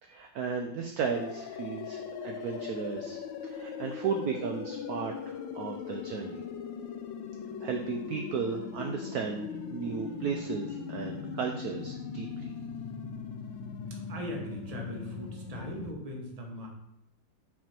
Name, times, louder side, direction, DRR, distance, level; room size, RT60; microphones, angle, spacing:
voice 1, 0.0-6.4 7.6-12.5, right 6 dB, 70° right, 3 dB, 0.9 m, -35 dB
sound 1, 1.0-15.9, left 6 dB, 80° left, 1.3 m, -39 dB
voice 2, 13.9-16.7, equal, 25° right, 0 dB, 0.9 m, -39 dB
6.1 x 4.5 x 4.3 m, 0.83 s
omnidirectional pair, 2.1 m